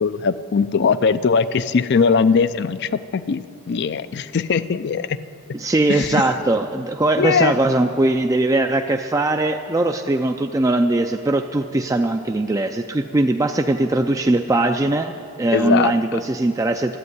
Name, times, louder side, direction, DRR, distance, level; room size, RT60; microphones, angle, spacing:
voice 1, 0.0-5.2 5.9-6.2 7.2-7.5 15.5-15.9, left 5 dB, 50° left, 15 dB, 0.4 m, -20 dB
voice 2, 5.5-17.0, right 2 dB, 15° right, 5 dB, 0.3 m, -20 dB
12.5 x 8.8 x 9.5 m, 2.4 s
head